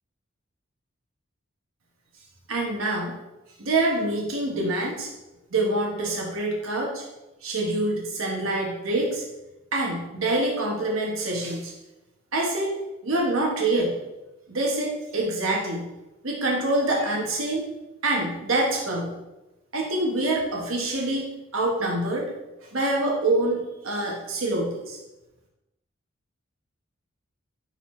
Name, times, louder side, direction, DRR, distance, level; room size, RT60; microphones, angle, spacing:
voice 1, 2.5-3.1 3.6-5.1 5.5-7.0 7.4-9.2 9.7-11.7 12.3-13.9 14.5-15.9 16.2-17.6 18.0-19.1 19.7-22.3 22.7-25.0, right 2 dB, 80° right, -1 dB, 1.1 m, -26 dB
10.0 x 4.0 x 3.1 m, 1.0 s
head